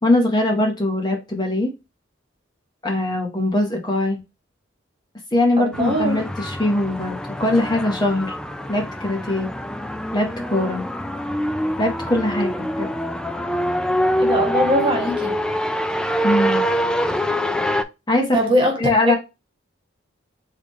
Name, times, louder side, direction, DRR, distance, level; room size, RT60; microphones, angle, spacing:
voice 1, 0.0-1.7 2.8-4.2 5.3-8.3 8.7-9.5 10.1-10.8 11.8-12.5 12.8-12.9 16.2-16.6 18.1-18.4 18.8-19.2, left 1 dB, 25° left, 0.8 m, -21 dB
voice 2, 5.6-6.2 14.2-15.3 18.3-18.9, equal, 30° right, 1.4 m, -21 dB
sound 1, 5.7-17.8, equal, 5° left, 0.3 m, -25 dB
3.6 x 3.3 x 4.0 m
head